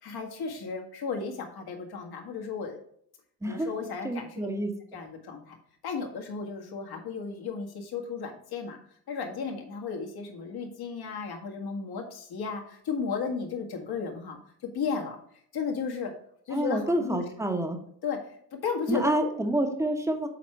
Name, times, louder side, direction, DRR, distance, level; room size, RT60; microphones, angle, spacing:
voice 1, 0.0-2.8 3.5-4.5 4.9-5.6 5.8-8.8 9.1-14.4 14.7-15.2 15.5-16.1 16.5-17.6 18.0-19.3, left 5 dB, 55° left, 2 dB, 1.9 m, -34 dB
voice 2, 4.0-4.7 16.5-17.8 18.9-20.3, right 1 dB, 5° right, 4 dB, 1.3 m, -28 dB
7.1 x 4.2 x 4.6 m, 0.67 s
supercardioid pair, 75°, 46 cm